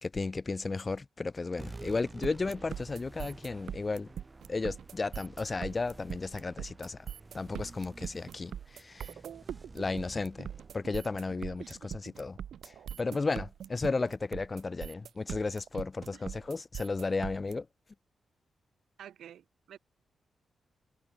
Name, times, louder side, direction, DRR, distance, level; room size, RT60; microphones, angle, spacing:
voice 1, 0.0-4.1 4.5-7.0 7.3-9.1 9.7-10.5 10.7-12.4 12.6-17.7, left 3 dB, 25° left, 1.4 m, -34 dB
sound 1, 1.6-12.4, right 3 dB, 20° right, 2.9 m, -51 dB
sound 2, 2.2-17.5, right 9 dB, 70° right, 1.4 m, -41 dB
voice 2, 11.6-12.0 16.1-16.2 19.0-19.8, right 10 dB, 85° right, 5.0 m, -51 dB
wide cardioid pair, 170°, 0 cm